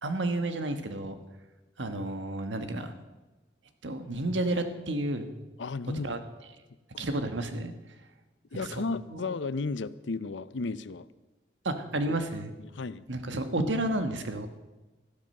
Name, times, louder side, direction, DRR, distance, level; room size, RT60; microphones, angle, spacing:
voice 1, 0.0-1.2 1.8-2.9 3.8-5.3 6.0-6.2 7.0-7.7 8.5-8.8 9.1-9.3 11.6-12.5 13.1-14.5, right 1 dB, 85° right, 8 dB, 1.5 m, -31 dB
voice 2, 5.6-6.2 6.9-7.1 8.5-11.1 12.6-13.0, left 4 dB, 80° left, 16 dB, 0.6 m, -34 dB
13.5 x 12.0 x 6.6 m, 1.1 s
head